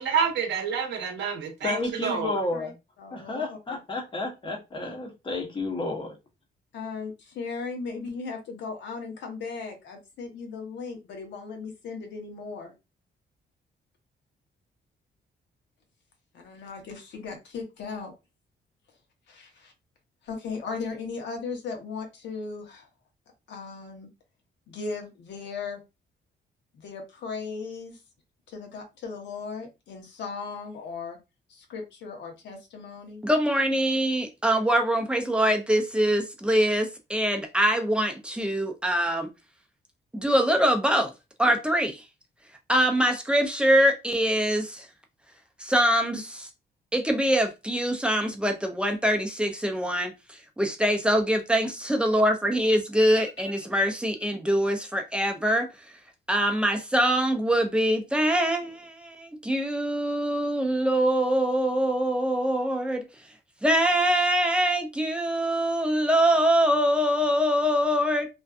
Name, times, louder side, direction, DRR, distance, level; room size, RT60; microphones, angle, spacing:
voice 1, 0.0-2.4, right 6 dB, 85° right, 0.8 m, -28 dB
voice 2, 1.6-2.7 3.1-6.2, left 2 dB, 30° left, 0.8 m, -31 dB
voice 3, 3.0-3.8 6.7-12.7 16.3-18.1 19.3-19.7 20.2-22.9 23.5-24.1 24.7-25.8 26.7-28.0 28.5-31.2 31.5-33.2, left 4 dB, 85° left, 0.8 m, -37 dB
voice 4, 33.2-39.3 40.1-41.1 41.4-42.0 42.7-44.9 45.6-46.5 46.9-55.7 56.3-63.0 63.6-68.3, equal, 5° right, 0.4 m, -24 dB
2.5 x 2.3 x 2.3 m
cardioid pair, 135°, 18 cm